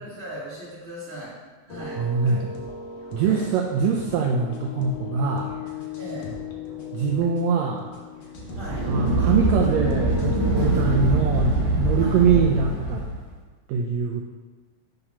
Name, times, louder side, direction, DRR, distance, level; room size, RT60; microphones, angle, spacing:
voice 1, 0.0-1.3 1.6-2.0 3.2-3.5 6.0-6.3 8.5-8.9 12.0-12.3, right 1 dB, 30° right, -9 dB, 1.2 m, -37 dB
sound 1, 1.7-10.8, left 3 dB, 90° left, 1.0 m, -37 dB
voice 2, 2.0-2.5 3.1-5.5 6.9-7.8 8.9-13.0 13.7-14.2, right 6 dB, 80° right, 0 dB, 1.7 m, -23 dB
sound 2, 8.4-13.2, right 1 dB, 60° right, 1.9 m, -23 dB
5.9 x 3.3 x 5.5 m, 1.3 s
omnidirectional pair, 3.3 m